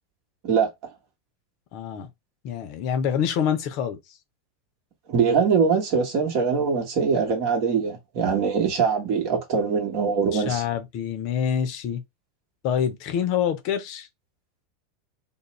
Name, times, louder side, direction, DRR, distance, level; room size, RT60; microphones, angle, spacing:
voice 1, 1.7-2.1 2.4-4.0 10.3-12.0 12.6-14.1, left 8 dB, 50° left, 0.5 m, -26 dB
voice 2, 5.1-10.6, right 5 dB, 50° right, 1.0 m, -22 dB
2.4 x 2.0 x 3.0 m
figure-of-eight pair, 85°, 0 cm